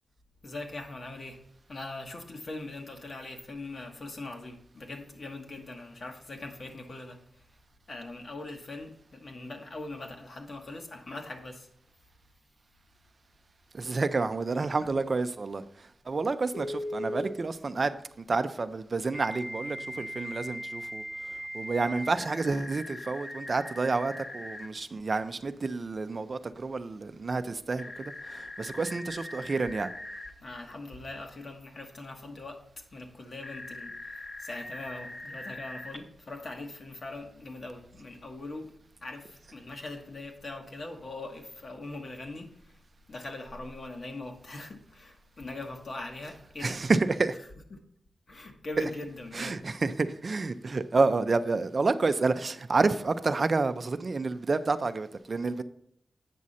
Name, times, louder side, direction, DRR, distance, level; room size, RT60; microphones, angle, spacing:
voice 1, 0.4-1.4 1.7-7.2 7.9-11.7 14.8-14.9 30.4-32.6 32.9-38.7 39.0-42.5 43.1-46.8 47.4-47.8 48.3-49.6, left 2 dB, 55° left, 1.4 m, -41 dB
voice 2, 13.7-15.6 16.1-21.0 21.5-29.9 46.6-47.4 48.8-48.9 49.3-55.6, right 3 dB, 45° right, 0.5 m, -29 dB
Telephone, 16.5-17.3 19.1-24.7 27.8-30.3 33.4-36.0, left 1 dB, 35° left, 1.0 m, -40 dB
8.4 x 6.2 x 4.2 m
wide cardioid pair, 90°, 0 cm